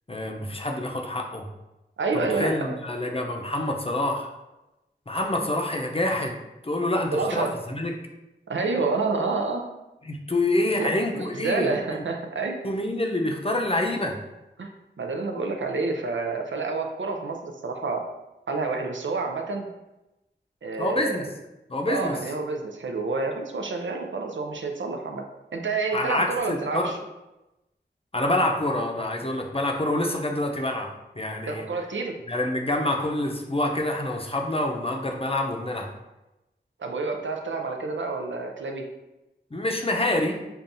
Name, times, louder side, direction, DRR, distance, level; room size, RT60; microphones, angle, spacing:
voice 1, 0.1-1.5 2.1-4.3 5.1-6.3 6.6-7.9 10.0-11.8 12.6-14.2 20.8-21.3 21.7-22.2 25.9-26.9 28.1-30.9 31.1-31.6 32.3-35.9 39.5-40.4, left 1 dB, 30° left, 1 dB, 0.6 m, -27 dB
voice 2, 2.0-2.8 7.1-7.5 8.5-9.7 10.7-12.6 14.6-14.7 15.0-18.1 18.5-19.7 20.6-21.2 21.9-25.2 25.5-27.0 31.4-32.2 36.8-38.9, right 3 dB, 90° right, 2 dB, 0.5 m, -28 dB
5.5 x 2.3 x 2.6 m, 0.97 s
wide cardioid pair, 50°, 19 cm